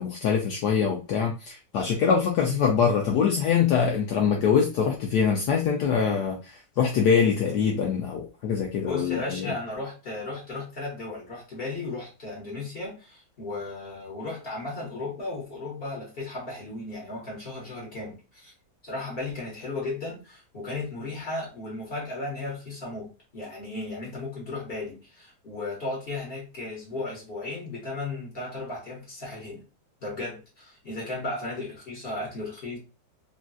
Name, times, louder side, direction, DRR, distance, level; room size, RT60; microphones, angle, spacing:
voice 1, 0.0-9.5, left 6 dB, 70° left, 1.0 m, -24 dB
voice 2, 8.8-18.5 18.8-29.6 30.0-32.8, left 2 dB, 35° left, 1.2 m, -35 dB
3.9 x 2.3 x 2.3 m
omnidirectional pair, 2.1 m